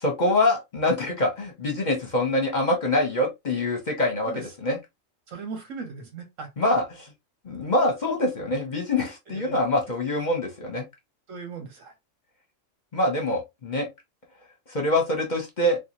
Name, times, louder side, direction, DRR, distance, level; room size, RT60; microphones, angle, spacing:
voice 1, 0.0-4.3 4.6-4.8 6.6-7.1 7.4-10.8 12.9-13.9 14.7-15.8, left 1 dB, 40° left, 0.8 m, -24 dB
voice 2, 5.3-6.5 9.3-9.6 11.3-11.9, right 5 dB, 70° right, 1.5 m, -38 dB
4.0 x 2.3 x 2.9 m
omnidirectional pair, 1.4 m